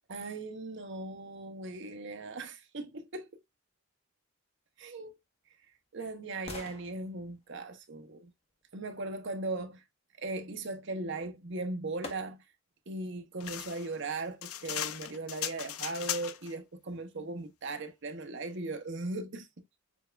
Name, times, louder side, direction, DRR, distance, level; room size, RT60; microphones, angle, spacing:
voice 1, 0.1-3.4 4.8-5.1 5.9-8.3 8.7-9.8 10.2-12.4 12.9-19.5, right 2 dB, 55° right, 0.8 m, -38 dB
sound 1, 5.0-9.0 11.1-11.2 12.0-12.7 13.2-13.3, left 2 dB, 30° left, 0.8 m, -50 dB
sound 2, 13.4-16.5, left 11 dB, 85° left, 0.5 m, -37 dB
7.0 x 2.3 x 2.2 m
head